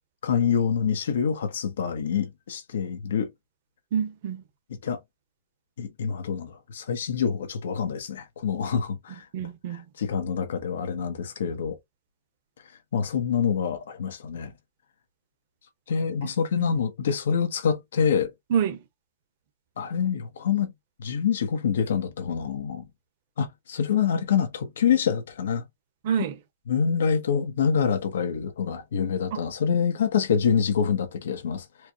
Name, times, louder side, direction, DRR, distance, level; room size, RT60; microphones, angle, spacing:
voice 1, 0.2-3.3 4.8-5.0 5.8-9.2 9.7-11.8 12.9-14.5 15.9-18.3 19.8-20.7 21.0-22.9 23.4-25.6 26.7-31.9, left 7 dB, 80° left, 1.1 m, -26 dB
voice 2, 3.9-4.4 9.3-9.9 16.6-16.8 18.5-18.8 26.0-26.3 29.3-29.4, right 8 dB, 40° right, 1.0 m, -27 dB
4.5 x 2.3 x 2.8 m
hypercardioid pair, 175°, 0 cm